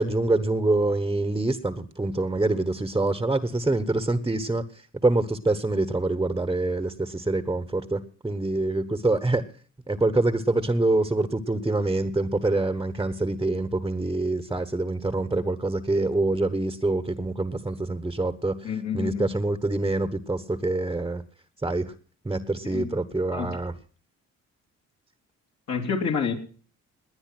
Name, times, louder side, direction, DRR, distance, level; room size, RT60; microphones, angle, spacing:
voice 1, 0.0-9.4 9.9-21.2 21.6-21.9 22.2-23.7, right 2 dB, 10° right, 1.2 m, -25 dB
voice 2, 18.6-19.4 22.7-22.9 23.3-23.6 25.7-26.3, left 6 dB, 60° left, 3.1 m, -28 dB
19.5 x 9.8 x 6.0 m
cardioid pair, 90°, 30 cm